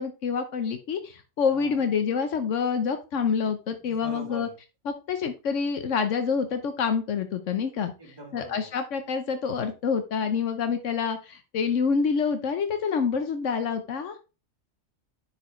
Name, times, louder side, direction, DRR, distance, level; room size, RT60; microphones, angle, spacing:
voice 1, 0.0-4.5 4.9-7.9 8.3-14.2, left 6 dB, 80° left, 8 dB, 1.2 m, -27 dB
voice 2, 1.5-1.9 3.8-4.5 8.0-8.7, left 1 dB, 20° right, 0 dB, 2.8 m, -42 dB
10.0 x 4.7 x 3.1 m, 0.30 s
omnidirectional pair, 1.3 m